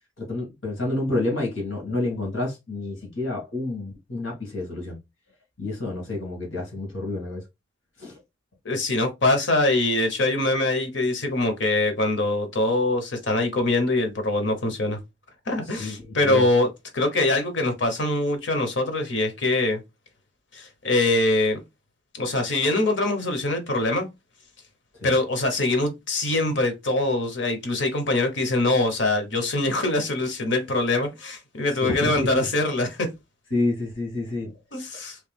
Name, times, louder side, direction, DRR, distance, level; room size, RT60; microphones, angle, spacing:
voice 1, 0.2-5.0 5.6-7.5 8.0-8.2 15.6-16.5 24.9-25.1 31.7-32.5 33.5-34.6, left 2 dB, 85° left, 1.8 m, -29 dB
voice 2, 8.6-15.0 15.5-19.8 20.5-21.6 22.1-24.1 25.0-33.1 34.7-35.2, left 2 dB, 65° left, 1.1 m, -23 dB
3.3 x 3.2 x 3.4 m
head